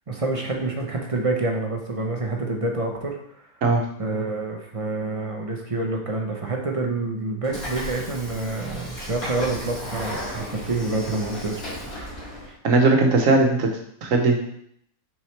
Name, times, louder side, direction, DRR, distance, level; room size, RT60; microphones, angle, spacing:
voice 1, 0.1-3.2 4.0-12.1 12.4-12.6, right 2 dB, 35° right, 1 dB, 0.6 m, -27 dB
Train / Sliding door, 7.4-12.5, equal, 85° left, 2.4 m, -35 dB
voice 2, 12.6-13.7 14.0-14.4, right 3 dB, 70° right, 2 dB, 1.3 m, -18 dB
6.0 x 4.8 x 3.2 m, 0.70 s
omnidirectional pair, 1.5 m